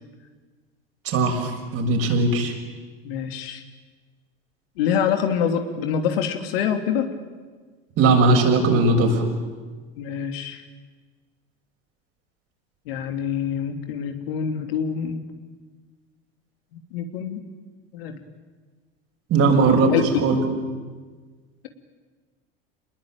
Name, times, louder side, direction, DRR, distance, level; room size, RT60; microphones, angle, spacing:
voice 1, 1.0-2.5 8.0-9.2 19.3-20.4, right 3 dB, 50° right, 3 dB, 6.6 m, -19 dB
voice 2, 3.0-3.6 4.8-7.1 10.0-10.6 12.9-15.2 16.9-17.4 17.9-18.1 19.9-20.2, left 8 dB, 75° left, 6 dB, 3.0 m, -25 dB
27.0 x 20.5 x 9.0 m, 1.4 s
hypercardioid pair, 80°, 30 cm